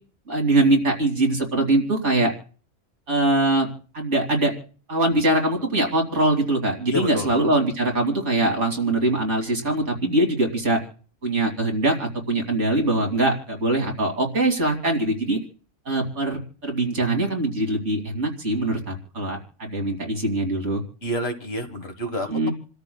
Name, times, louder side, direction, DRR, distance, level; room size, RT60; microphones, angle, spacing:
voice 1, 0.3-2.3 3.1-3.7 3.9-4.5 4.9-10.8 11.2-15.4 15.8-20.8 22.3-22.5, right 2 dB, 75° right, 1 dB, 3.1 m, -22 dB
voice 2, 6.9-7.3 21.0-22.5, equal, 55° left, 6 dB, 1.9 m, -29 dB
28.5 x 13.5 x 2.3 m, 0.40 s
omnidirectional pair, 1.2 m